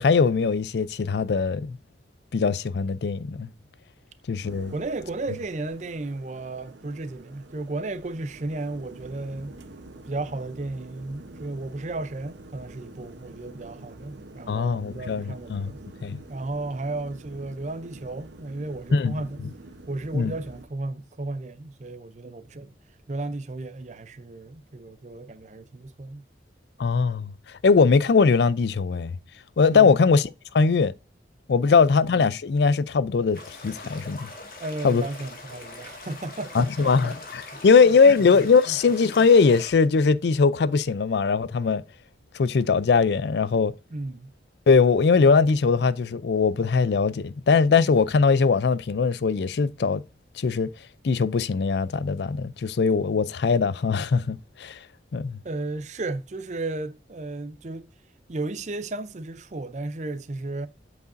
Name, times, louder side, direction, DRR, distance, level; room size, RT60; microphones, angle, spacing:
voice 1, 0.0-1.8 2.3-3.5 4.3-4.7 14.5-15.7 16.0-16.2 18.9-19.2 20.1-20.3 26.8-27.3 27.6-29.1 29.6-30.3 30.5-30.9 31.5-34.3 34.8-35.0 36.5-41.8 42.3-43.7 44.7-50.0 50.4-50.7 51.0-54.8 55.1-55.4, left 5 dB, 70° left, 0.4 m, -21 dB
sound 1, 4.4-20.7, right 2 dB, 80° right, 0.9 m, -47 dB
voice 2, 4.7-9.6 10.1-15.8 16.3-19.4 19.9-22.7 23.1-26.3 29.7-30.0 31.7-31.8 34.6-37.2 37.5-38.3 38.7-38.8 43.9-44.3 55.4-57.9 58.3-60.7, right 2 dB, 40° right, 0.5 m, -34 dB
sound 2, 33.3-39.7, left 2 dB, 50° left, 1.7 m, -42 dB
8.1 x 4.8 x 2.6 m
head